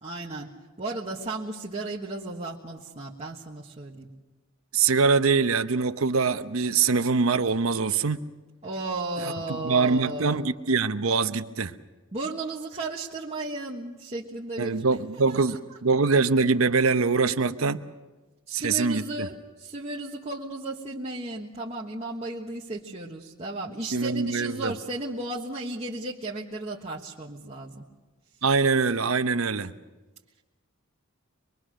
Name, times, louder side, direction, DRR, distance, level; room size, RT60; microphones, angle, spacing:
voice 1, 0.0-0.5 0.8-4.1 8.6-10.4 12.1-14.7 15.3-15.6 18.5-27.8, right 2 dB, 30° right, -5 dB, 1.5 m, -34 dB
voice 2, 4.7-8.2 9.2-11.7 14.6-17.8 18.5-19.3 23.9-24.7 28.4-29.7, right 4 dB, 70° right, 10 dB, 0.9 m, -24 dB
24.5 x 22.5 x 6.4 m, 1.2 s
head